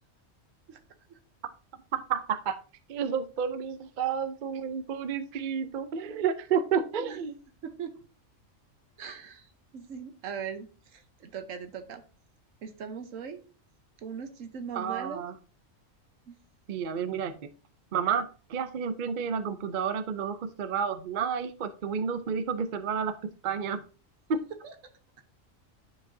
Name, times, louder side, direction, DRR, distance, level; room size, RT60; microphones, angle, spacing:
voice 1, 1.9-2.6 2.9-7.3 14.7-15.3 16.7-17.4 17.9-23.8 24.3-24.4, right 7 dB, 50° right, 11 dB, 0.6 m, -30 dB
voice 2, 7.6-7.9 9.0-12.0 12.6-13.4 14.0-15.2 16.3-16.4 24.6-24.7, right 7 dB, 80° right, 9 dB, 1.3 m, -40 dB
10.5 x 4.8 x 2.7 m, 0.37 s
omnidirectional pair, 1.3 m